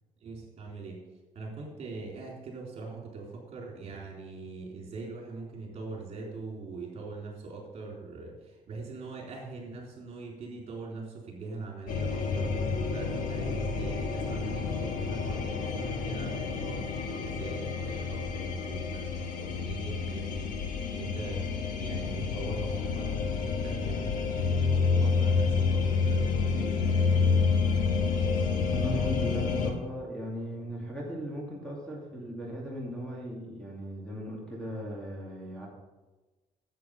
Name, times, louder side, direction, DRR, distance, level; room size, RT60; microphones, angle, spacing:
voice 1, 0.2-1.0 1.4-8.4 8.7-12.5 12.9-20.5 20.9-27.1, right 3 dB, 50° right, -1 dB, 3.8 m, -42 dB
sound 1, 11.9-29.7, left 5 dB, 80° left, 1.5 m, -29 dB
voice 2, 28.7-35.7, equal, 5° left, -3 dB, 2.5 m, -37 dB
10.5 x 8.6 x 5.4 m, 1.2 s
cardioid pair, 140°, 14 cm